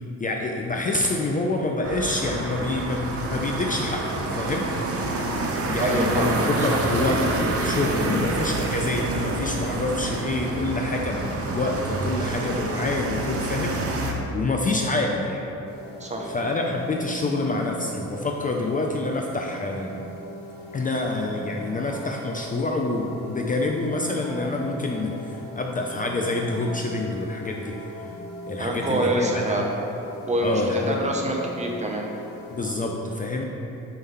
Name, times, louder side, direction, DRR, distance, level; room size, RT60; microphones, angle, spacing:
voice 1, 0.2-4.7 5.7-15.4 16.3-20.0 20.7-27.8 28.5-29.6 30.4-31.0 32.5-33.5, left 2 dB, 25° left, 1 dB, 0.5 m, -27 dB
sound 1, 1.8-14.1, right 2 dB, 50° right, 0.8 m, -27 dB
voice 2, 5.8-6.8 16.0-16.3 28.6-29.7 30.3-32.1, right 1 dB, 25° right, 0 dB, 0.8 m, -26 dB
sound 2, 15.7-32.7, equal, 65° left, 1.2 m, -40 dB
4.5 x 3.8 x 5.5 m, 2.9 s
cardioid pair, 90°, 30 cm